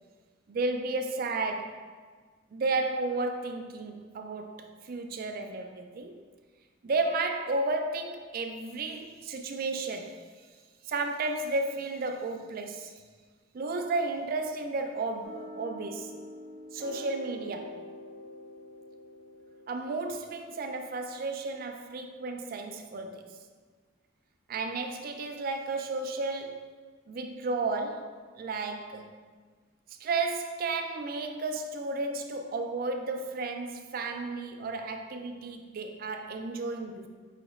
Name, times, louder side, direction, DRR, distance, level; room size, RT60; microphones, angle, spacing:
voice 1, 0.5-1.8 2.5-6.2 6.8-10.2 10.8-12.9 13.5-16.2 16.7-17.8 19.7-23.3 24.5-26.7 27.1-29.1 30.0-37.1, right 3 dB, 50° right, 5 dB, 0.4 m, -33 dB
sound 1, 15.2-20.7, left 1 dB, 70° left, 1.0 m, -45 dB
5.8 x 2.9 x 2.5 m, 1.5 s
head